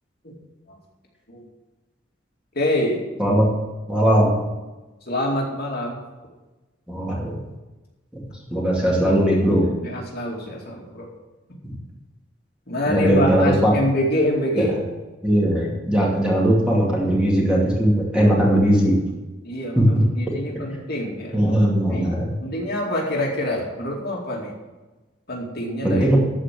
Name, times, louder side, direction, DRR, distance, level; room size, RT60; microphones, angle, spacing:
voice 1, 2.5-3.0 5.1-6.0 9.0-9.1 9.8-11.1 12.7-14.7 19.4-21.4 21.9-22.1 22.4-24.6 25.3-26.1, left 1 dB, 55° left, -2 dB, 2.5 m, -25 dB
voice 2, 3.9-4.3 6.9-7.4 8.5-9.7 11.6-11.8 12.9-13.7 14.6-14.7 15.2-18.9 19.8-19.9 21.3-22.3 25.8-26.2, equal, 5° right, -4 dB, 2.5 m, -19 dB
13.5 x 5.0 x 7.6 m, 1.1 s
head